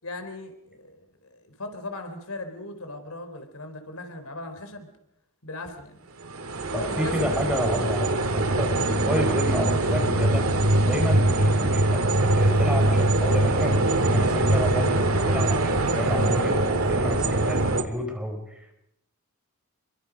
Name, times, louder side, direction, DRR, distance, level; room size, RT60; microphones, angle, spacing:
voice 1, 0.0-4.9 5.4-6.0 6.7-7.7, left 2 dB, 90° left, 7 dB, 3.9 m, -38 dB
sound 1, 6.3-17.8, right 2 dB, 80° right, 2.2 m, -22 dB
voice 2, 6.7-8.1 8.4-10.5 10.8-18.7, equal, 5° right, 2 dB, 5.1 m, -30 dB
27.5 x 23.0 x 5.2 m, 0.78 s
head